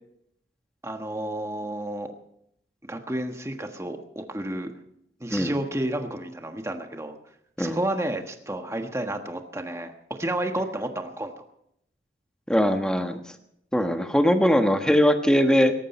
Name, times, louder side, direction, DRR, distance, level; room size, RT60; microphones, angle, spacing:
voice 1, 0.8-2.1 2.8-4.7 5.2-7.2 7.6-11.4, right 1 dB, 15° right, 5 dB, 1.4 m, -31 dB
voice 2, 12.5-13.1 13.7-15.7, equal, 5° left, 6 dB, 1.3 m, -21 dB
18.5 x 14.0 x 4.3 m, 0.73 s
head